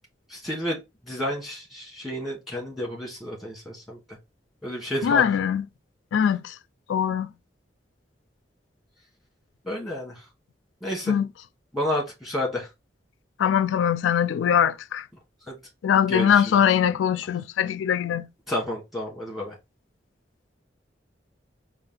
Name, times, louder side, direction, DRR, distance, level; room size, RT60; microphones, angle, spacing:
voice 1, 0.3-0.8 1.0-4.2 4.6-5.2 9.6-10.2 10.8-11.2 11.7-12.7 15.5-15.6 16.1-16.6 18.5-19.5, equal, ahead, 1.5 m, -31 dB
voice 2, 5.0-5.6 6.1-6.5 6.9-7.3 11.1-11.3 13.4-15.0 15.8-18.3, left 8 dB, 85° left, 0.3 m, -22 dB
4.3 x 2.4 x 3.8 m
head